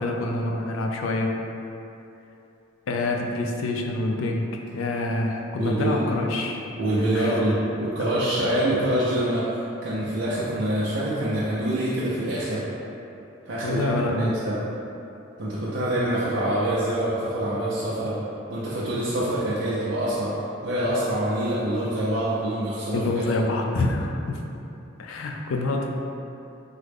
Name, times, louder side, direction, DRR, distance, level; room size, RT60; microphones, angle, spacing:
voice 1, 0.0-1.4 2.9-6.6 7.1-7.5 13.6-14.3 22.9-24.4 25.0-25.9, left 2 dB, 85° left, 1 dB, 0.4 m, -26 dB
voice 2, 5.6-6.1 6.8-12.6 13.5-14.6 15.4-18.2 18.5-20.3 20.6-23.2, right 1 dB, 65° right, -9 dB, 0.5 m, -25 dB
3.6 x 2.0 x 3.3 m, 2.8 s
head